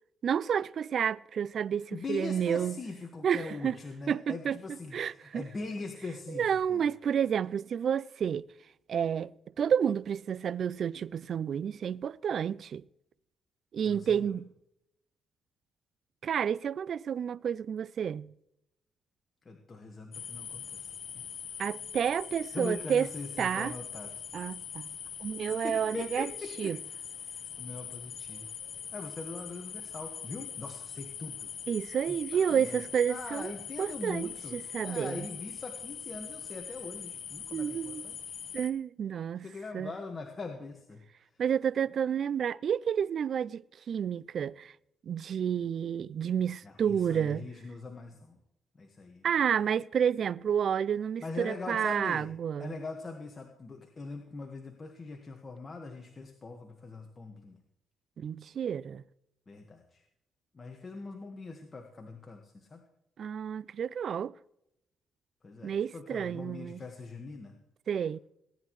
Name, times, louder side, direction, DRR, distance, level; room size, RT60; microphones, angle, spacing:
voice 1, 0.2-2.8 3.2-3.7 4.1-4.6 4.9-5.4 6.3-8.5 8.9-9.3 9.6-12.8 13.7-14.5 16.2-18.3 21.6-23.1 23.4-23.7 24.3-24.9 25.2-26.3 26.6-26.8 31.7-33.5 33.8-35.3 37.5-38.0 38.5-39.5 39.7-39.9 41.4-43.6 43.9-44.7 45.0-47.5 49.2-52.7 58.2-59.0 63.2-64.3 65.6-66.8 67.9-68.2, right 8 dB, 60° right, 0.4 m, -30 dB
voice 2, 1.9-6.8 13.8-14.3 19.4-20.9 22.5-24.2 25.5-26.7 27.2-28.5 28.9-31.5 32.1-32.8 33.1-38.4 39.4-41.0 41.3-41.4 46.6-48.4 48.8-49.3 51.2-52.3 52.6-57.6 59.5-60.0 60.5-62.8 65.4-67.6, left 3 dB, 30° left, 1.6 m, -42 dB
sound 1, 20.1-38.7, left 7 dB, 60° left, 1.1 m, -42 dB
18.0 x 10.0 x 3.1 m
cardioid pair, 90°, 0 cm